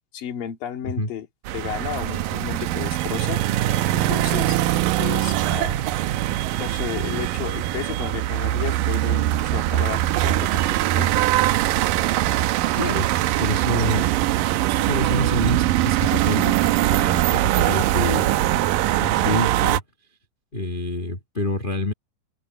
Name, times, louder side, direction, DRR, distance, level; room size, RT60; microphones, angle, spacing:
voice 1, 0.1-1.3 1.5-3.4 3.9-4.6 5.0-5.9 6.6-11.3, left 10 dB, 75° left, 4.0 m, -33 dB
sound 1, 1.4-19.8, right 14 dB, 80° right, 2.3 m, -22 dB
voice 2, 12.8-13.1 13.4-14.1 14.9-19.8 20.5-21.9, left 1 dB, 50° left, 0.6 m, -27 dB
omnidirectional pair, 4.0 m